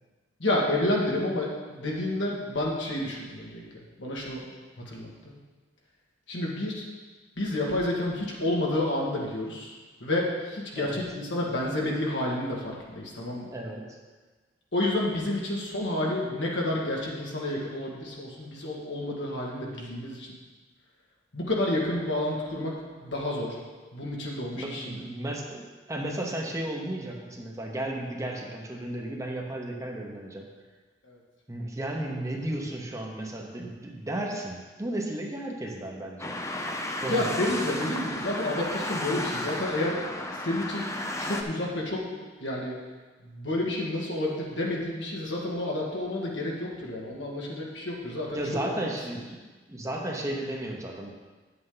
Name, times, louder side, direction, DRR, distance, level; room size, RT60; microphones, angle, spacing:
voice 1, 0.4-4.4 4.9-5.3 6.3-6.8 7.4-13.5 14.7-20.3 21.3-22.8 23.0-23.6 23.9-24.9 31.0-31.2 37.0-40.0 40.3-40.9 41.2-42.0 42.4-42.8 43.2-48.8, left 1 dB, 75° left, -3 dB, 1.9 m, -30 dB
voice 2, 13.5-13.8 24.5-30.5 31.5-36.4 37.0-37.5 48.3-49.4 49.7-51.1, right 1 dB, 15° right, 0 dB, 0.9 m, -34 dB
sound 1, 36.2-41.4, left 1 dB, 15° left, 0.6 m, -33 dB
9.2 x 7.7 x 4.0 m, 1.3 s
head